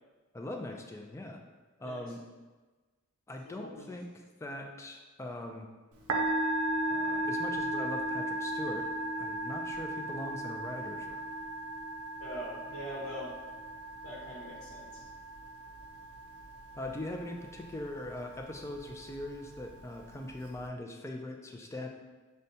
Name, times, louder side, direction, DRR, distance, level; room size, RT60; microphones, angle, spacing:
voice 1, 0.3-1.4 1.8-2.2 3.3-4.1 4.4-5.7 6.9-11.2 16.8-21.9, left 1 dB, 15° left, 3 dB, 0.3 m, -41 dB
voice 2, 3.5-3.9 12.2-13.3 14.0-15.0, equal, 65° left, -8 dB, 0.9 m, -42 dB
Musical instrument, 5.9-20.7, right 1 dB, 80° right, 0.5 m, -36 dB
6.4 x 2.2 x 2.7 m, 1.3 s
head